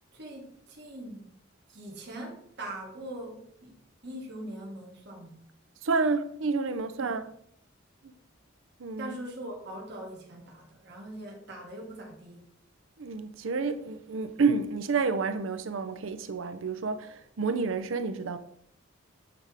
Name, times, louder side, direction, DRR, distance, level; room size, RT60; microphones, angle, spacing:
voice 1, 0.1-1.3 1.7-3.8 4.0-5.4 7.0-7.2 9.0-12.4, right 1 dB, 60° right, 1.3 m, -41 dB
voice 2, 5.8-7.2 8.0-8.1 8.8-9.2 13.0-18.4, right 4 dB, 85° right, 0.6 m, -29 dB
7.8 x 3.5 x 4.7 m
head